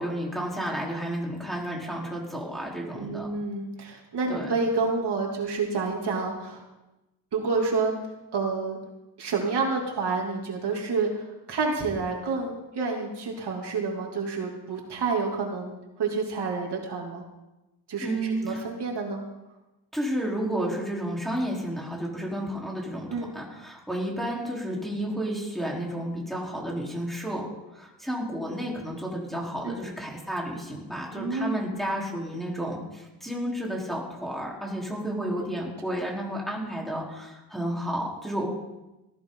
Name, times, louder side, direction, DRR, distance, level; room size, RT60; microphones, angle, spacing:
voice 1, 0.0-3.3 4.3-4.5 18.0-18.6 19.9-38.5, right 1 dB, ahead, -4 dB, 4.0 m, -31 dB
voice 2, 3.0-6.6 7.3-8.0 8.3-8.8 9.2-15.7 16.0-17.2 17.9-19.2 23.1-23.3 29.6-29.8 31.1-31.8 35.6-35.7, right 4 dB, 60° right, 0 dB, 3.1 m, -29 dB
19.0 x 15.0 x 4.0 m, 1.0 s
cardioid pair, 130°, 45 cm